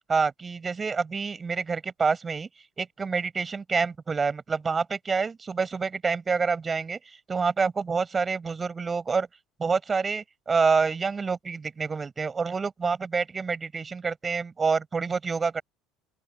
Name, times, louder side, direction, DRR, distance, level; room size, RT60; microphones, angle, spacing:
voice 1, 0.1-2.5 2.8-9.3 9.6-15.6, right 5 dB, 25° right, 5.0 m, -27 dB
open air
figure-of-eight pair, 65°, 0 cm